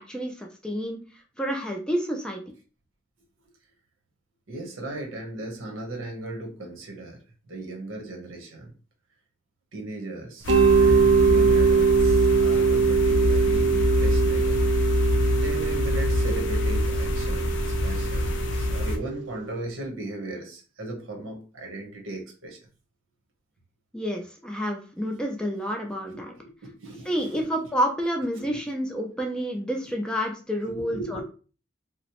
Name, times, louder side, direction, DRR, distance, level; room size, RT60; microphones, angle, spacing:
voice 1, 0.0-2.4 23.9-26.3 27.1-31.2, equal, 5° left, 2 dB, 0.3 m, -29 dB
voice 2, 4.5-7.2 7.5-8.7 9.7-14.7 15.3-22.6 26.1-27.5 28.4-28.6 30.6-31.2, right 1 dB, 90° right, 1 dB, 0.9 m, -37 dB
sound 1, 10.4-19.0, left 2 dB, 70° left, 0.5 m, -25 dB
Mallet percussion, 10.5-19.2, right 5 dB, 60° right, 0.4 m, -22 dB
2.8 x 2.0 x 2.9 m, 0.36 s
head